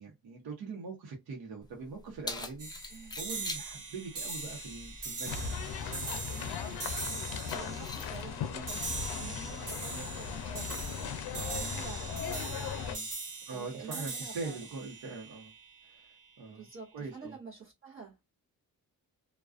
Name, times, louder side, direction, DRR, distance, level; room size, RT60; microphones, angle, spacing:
voice 1, 0.0-5.6 9.4-9.5 11.3-11.7 12.5-13.1 13.5-15.5 15.8-16.7 16.9-17.4, right 4 dB, 75° right, 0.8 m, -43 dB
Keys jangling, 1.6-12.6, left 2 dB, 15° left, 0.3 m, -48 dB
sound 1, 2.6-16.0, right 3 dB, 60° right, 1.3 m, -41 dB
sound 2, 5.3-13.0, left 7 dB, 85° left, 0.5 m, -38 dB
voice 2, 6.3-6.7 7.4-10.9 11.5-12.1 13.5-14.6 16.5-18.2, right 5 dB, 35° right, 0.7 m, -48 dB
2.3 x 2.2 x 2.4 m
cardioid pair, 115°, 37 cm